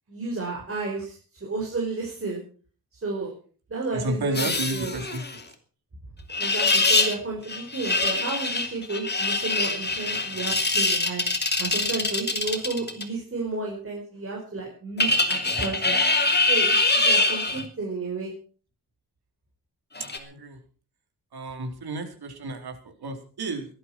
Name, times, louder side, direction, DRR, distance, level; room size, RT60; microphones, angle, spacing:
voice 1, 0.1-1.1 1.4-2.4 2.9-3.3 3.7-4.9 6.4-11.3 11.6-16.0 16.5-18.3, right 3 dB, 35° right, -1 dB, 5.3 m, -32 dB
voice 2, 3.9-5.4 20.1-20.6 21.3-23.7, right 2 dB, 80° right, 5 dB, 4.0 m, -32 dB
sound 1, 4.3-5.4 6.3-7.2 7.5-13.0 15.0-17.6 20.0-20.2, left 3 dB, 25° left, 2.7 m, -24 dB
18.0 x 12.0 x 6.1 m, 0.41 s
wide cardioid pair, 130°, 37 cm